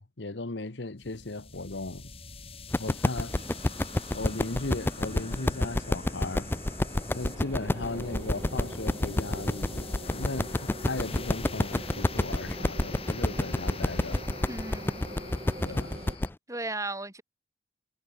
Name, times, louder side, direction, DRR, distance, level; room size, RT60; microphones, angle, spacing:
voice 1, 0.0-2.1 2.8-3.3 4.1-6.5 7.1-14.2 15.6-15.9, left 2 dB, 75° left, 1.2 m, -36 dB
sound 1, 1.0-16.3, left 3 dB, 30° left, 5.1 m, -43 dB
sound 2, 2.7-16.3, left 1 dB, 10° left, 0.3 m, -28 dB
sound 3, 3.3-16.2, right 1 dB, 35° right, 5.4 m, -44 dB
voice 2, 14.5-15.0 16.5-17.2, right 2 dB, 15° right, 6.3 m, -35 dB
head